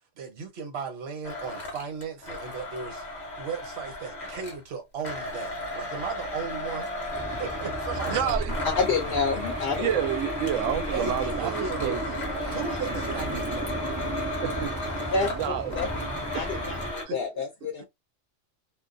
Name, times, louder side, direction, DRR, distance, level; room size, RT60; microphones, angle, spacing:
voice 1, 0.2-3.0 3.4-6.9 7.4-8.5 10.9-13.8, right 6 dB, 60° right, 1.1 m, -36 dB
Domestic sounds home sounds, 1.2-4.6 5.0-17.0, left 1 dB, 40° left, 0.9 m, -34 dB
sound 1, 7.1-16.9, right 2 dB, 25° right, 0.3 m, -35 dB
voice 2, 7.9-8.5 9.7-12.1 14.4-14.7 15.3-16.1 16.3-16.5 17.1-17.4, right 10 dB, 85° right, 0.9 m, -30 dB
voice 3, 8.8-9.9 15.1-15.3 15.7-15.9 16.3-17.8, left 4 dB, 65° left, 0.7 m, -28 dB
2.4 x 2.2 x 2.5 m
omnidirectional pair, 1.3 m